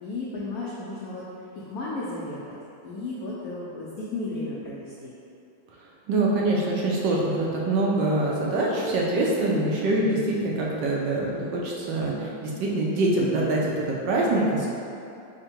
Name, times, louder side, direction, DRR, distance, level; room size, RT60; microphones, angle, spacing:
voice 1, 0.0-1.2 1.6-2.6 2.8-5.2, left 2 dB, 85° left, -7 dB, 0.8 m, -34 dB
voice 2, 6.1-14.7, right 2 dB, 75° right, -3 dB, 1.2 m, -24 dB
3.7 x 2.1 x 4.2 m, 2.7 s
omnidirectional pair, 2.1 m